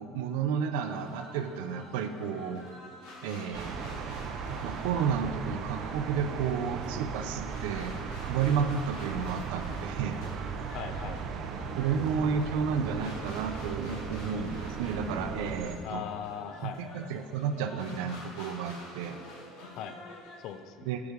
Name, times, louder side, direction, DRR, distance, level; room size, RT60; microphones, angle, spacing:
voice 1, 0.0-2.6 3.2-3.8 4.6-7.9 8.2-10.3 11.8-16.0 16.6-19.2 20.9-21.0, right 6 dB, 90° right, 8 dB, 0.6 m, -31 dB
sound 1, 0.8-20.6, left 2 dB, 80° left, 1.8 m, -48 dB
sound 2, 3.5-15.8, right 6 dB, 40° right, 0.5 m, -37 dB
voice 2, 10.7-11.2 15.8-16.8 19.8-20.0 20.4-20.9, left 9 dB, 50° left, 10 dB, 0.4 m, -39 dB
9.7 x 4.8 x 5.3 m, 2.3 s
cardioid pair, 175°, 0 cm